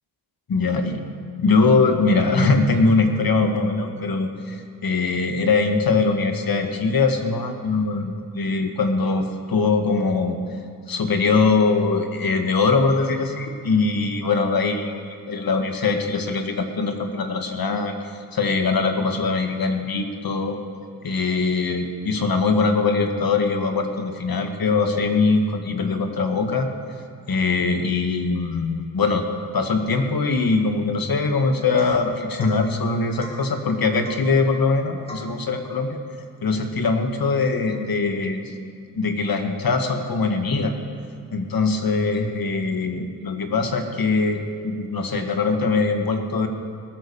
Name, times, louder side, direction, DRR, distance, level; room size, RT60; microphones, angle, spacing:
voice 1, 0.5-1.0 1.4-10.4 10.9-20.6 21.0-26.7 27.3-29.3 29.5-36.0 36.4-38.5 38.9-40.7 41.3-46.5, left 4 dB, 60° left, 5 dB, 1.7 m, -22 dB
Domestic sounds home sounds / Chink clink / Drip, 31.8-32.1 32.4-32.6 33.2-33.5 34.0-34.3 35.1-35.4, left 2 dB, 15° left, 3.2 m, -40 dB
19.0 x 9.1 x 6.9 m, 2.6 s
wide cardioid pair, 90°, 39 cm